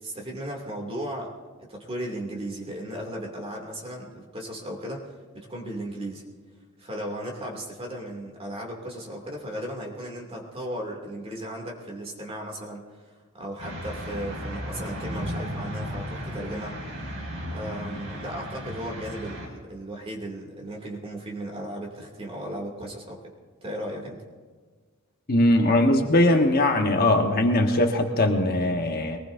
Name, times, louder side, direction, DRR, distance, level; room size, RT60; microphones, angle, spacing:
voice 1, 0.0-1.3 1.6-6.2 6.8-16.8 17.5-23.3 23.6-24.2, right 1 dB, 30° right, -1 dB, 2.7 m, -36 dB
sound 1, 13.6-19.5, equal, 75° right, 4.2 m, -35 dB
voice 2, 25.3-29.2, left 1 dB, 50° left, 3 dB, 1.3 m, -21 dB
22.5 x 19.5 x 2.7 m, 1.5 s
head